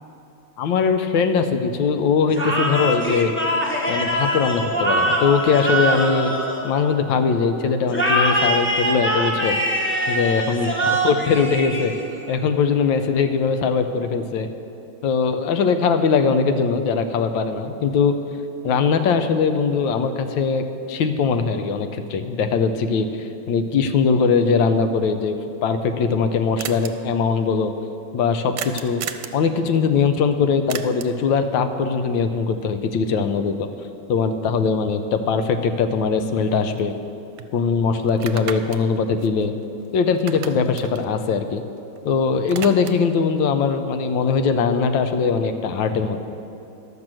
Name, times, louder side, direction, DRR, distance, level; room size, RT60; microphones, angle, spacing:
voice 1, 0.6-3.3 3.9-6.3 6.6-9.6 10.1-11.9 12.3-14.5 15.0-18.2 18.6-25.4 25.6-27.7 28.1-29.0 29.3-33.7 34.1-37.0 37.5-39.5 39.9-41.6 42.0-46.2, left 5 dB, 75° left, 8 dB, 1.4 m, -21 dB
sound 1, 2.3-7.2 7.9-12.3, equal, 10° left, 0.6 m, -23 dB
sound 2, 26.6-26.9 28.6-29.4 30.7-31.2 35.4-35.5 35.9-37.1 37.4-37.5 38.1-39.9 40.1-42.0 42.3-43.1, right 9 dB, 80° right, 1.3 m, -35 dB
12.0 x 6.2 x 7.5 m, 2.8 s
omnidirectional pair, 2.2 m